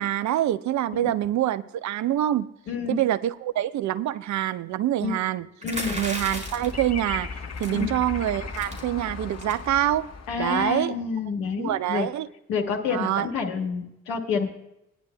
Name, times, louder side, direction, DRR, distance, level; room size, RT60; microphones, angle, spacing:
voice 1, 0.0-2.5 2.9-5.5 5.9-7.3 7.6-10.1 10.4-10.9 11.6-12.3 12.9-13.3, right 12 dB, 50° right, 14 dB, 0.6 m, -25 dB
voice 2, 2.7-3.0 5.0-5.1 5.6-6.0 7.7-7.9 10.3-12.1 12.5-14.5, left 5 dB, 70° left, 2 dB, 1.5 m, -28 dB
sound 1, 5.6-6.8 7.6-7.9 8.2-8.3 8.5-8.8 9.4-9.7, right 1 dB, 20° right, 3.9 m, -34 dB
sound 2, 5.7-10.7, left 4 dB, 45° left, 1.3 m, -37 dB
19.5 x 10.0 x 2.3 m, 0.86 s
figure-of-eight pair, 40°, 37 cm